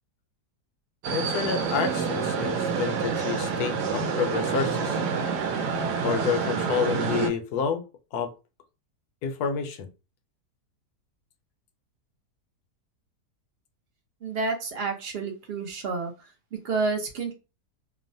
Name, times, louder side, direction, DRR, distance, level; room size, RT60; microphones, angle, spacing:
sound 1, 1.0-7.3, right 5 dB, 90° right, 1.2 m, -28 dB
voice 1, 1.1-5.0 6.0-7.8 8.1-8.3 9.2-9.9, left 7 dB, 75° left, 6 dB, 1.1 m, -29 dB
voice 2, 14.2-16.1 16.5-17.3, right 4 dB, 70° right, 3 dB, 0.5 m, -29 dB
3.0 x 2.1 x 2.6 m, 0.29 s
omnidirectional pair, 1.7 m